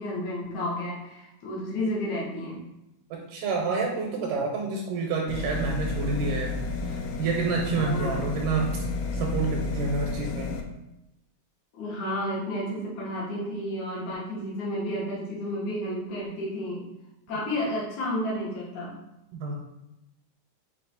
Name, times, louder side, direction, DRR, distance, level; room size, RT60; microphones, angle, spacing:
voice 1, 0.0-2.6 7.7-8.2 11.7-16.9 17.3-19.0, left 1 dB, 70° left, -5 dB, 2.3 m, -31 dB
voice 2, 3.1-8.8 9.1-10.5 17.3-17.4 19.3-19.6, right 4 dB, 80° right, 0 dB, 2.1 m, -29 dB
sound 1, 5.3-10.6, left 3 dB, 85° left, 2.1 m, -31 dB
5.3 x 2.3 x 4.0 m, 0.89 s
omnidirectional pair, 3.7 m